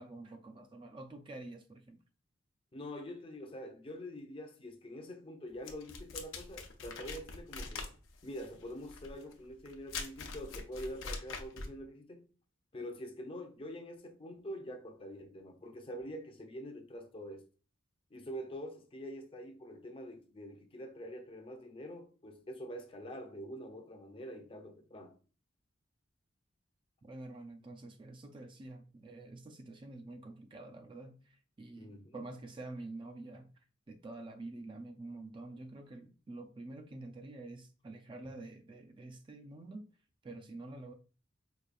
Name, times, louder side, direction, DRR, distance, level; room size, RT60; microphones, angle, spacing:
voice 1, 0.0-2.0 27.0-33.5 33.9-39.8 40.2-40.9, right 2 dB, 25° right, 0.3 m, -48 dB
voice 2, 2.7-7.9 8.2-12.2 12.7-17.4 18.1-25.2 31.8-32.2, equal, 30° left, 0.5 m, -45 dB
sound 1, 5.6-11.8, left 4 dB, 80° left, 0.6 m, -43 dB
4.8 x 2.3 x 2.4 m
head